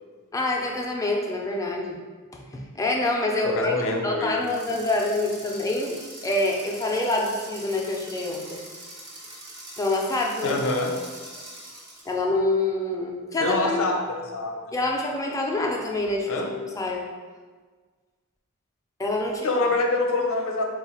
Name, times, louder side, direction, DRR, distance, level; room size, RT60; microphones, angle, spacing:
voice 1, 0.3-2.0 2.5-3.7 4.0-8.6 9.8-10.6 12.1-13.9 14.7-17.1 19.0-19.5, left 2 dB, 15° left, 0 dB, 0.4 m, -26 dB
voice 2, 3.4-4.3 10.4-11.0 13.4-14.7 16.3-16.5 19.3-20.6, left 2 dB, 60° left, 2 dB, 0.6 m, -25 dB
sound 1, 4.4-12.2, right 1 dB, 50° right, 1.1 m, -43 dB
4.2 x 2.3 x 4.2 m, 1.5 s
head